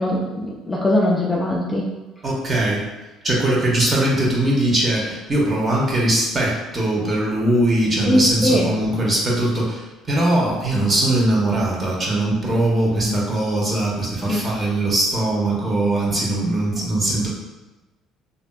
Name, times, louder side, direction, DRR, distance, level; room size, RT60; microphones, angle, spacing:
voice 1, 0.0-1.9 8.1-8.7 13.0-13.2 14.3-14.5, left 1 dB, 15° left, -3 dB, 0.5 m, -21 dB
voice 2, 2.2-2.9 3.2-17.3, right 1 dB, 35° right, -4 dB, 1.1 m, -20 dB
3.1 x 2.6 x 2.3 m, 1.1 s
supercardioid pair, 80°, 0 cm